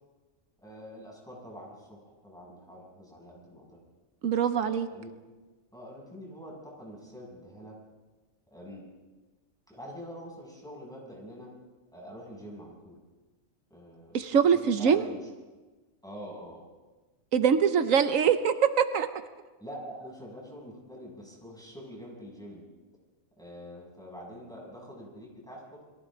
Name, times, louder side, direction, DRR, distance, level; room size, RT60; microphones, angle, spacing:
voice 1, 0.6-3.8 4.6-5.1 5.7-7.8 8.5-8.9 9.7-11.5 11.9-13.0 13.7-15.3 16.0-16.6 19.6-22.6 23.4-25.8, equal, 5° left, -3 dB, 7.2 m, -45 dB
voice 2, 4.2-4.9 14.1-15.0 17.3-19.1, right 7 dB, 85° right, 9 dB, 1.3 m, -23 dB
29.5 x 22.5 x 3.9 m, 1.2 s
omnidirectional pair, 1.3 m